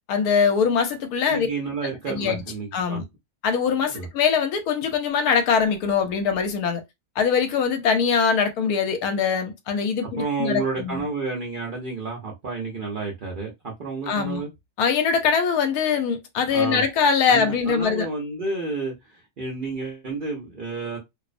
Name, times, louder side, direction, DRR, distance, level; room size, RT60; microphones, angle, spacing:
voice 1, 0.1-1.5 2.1-2.4 2.7-3.0 3.4-6.8 7.2-11.0 14.1-14.4 14.8-18.1, left 6 dB, 85° left, 1.1 m, -22 dB
voice 2, 1.3-3.0 3.8-4.1 10.0-14.5 16.4-16.8 17.3-21.0, right 4 dB, 50° right, 0.6 m, -30 dB
2.5 x 2.0 x 2.4 m
omnidirectional pair, 1.6 m